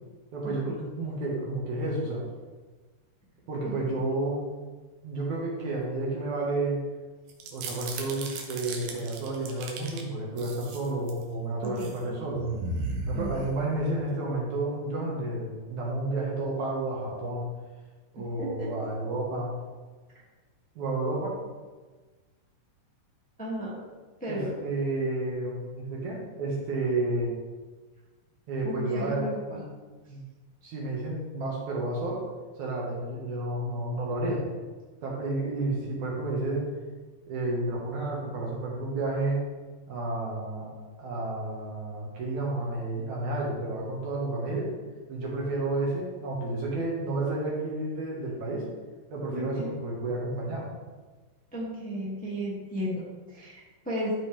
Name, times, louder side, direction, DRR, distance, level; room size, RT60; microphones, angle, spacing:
voice 1, 0.3-2.2 3.5-4.4 5.0-6.8 7.5-12.5 13.1-17.5 18.1-19.5 20.8-21.3 24.3-27.3 28.5-29.6 30.1-30.2 30.6-32.2 32.6-34.5 35.0-36.7 37.3-39.4 39.9-40.7 41.0-44.7 45.1-48.6 49.1-50.7, right 2 dB, 65° right, -3 dB, 2.9 m, -31 dB
sound 1, 7.3-10.0 10.4-11.2 11.6-12.0 12.3-13.9, right 3 dB, 90° right, 2.8 m, -36 dB
voice 2, 11.6-12.2 13.1-13.5 18.4-18.7 23.4-23.7 24.2-24.5 28.6-29.6 49.3-49.7 51.5-54.1, equal, 5° left, -6 dB, 1.5 m, -34 dB
13.0 x 5.3 x 3.5 m, 1.3 s
omnidirectional pair, 3.9 m